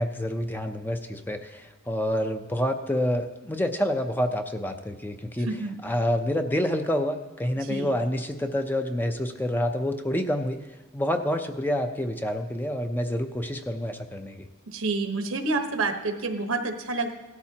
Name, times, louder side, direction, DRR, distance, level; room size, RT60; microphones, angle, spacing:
voice 1, 0.0-5.5 5.8-10.6 10.9-14.5, left 1 dB, 10° left, 6 dB, 0.6 m, -28 dB
voice 2, 5.4-5.8 7.7-7.9 14.7-17.1, right 3 dB, 80° right, 6 dB, 1.1 m, -28 dB
17.5 x 13.0 x 2.9 m, 1.2 s
head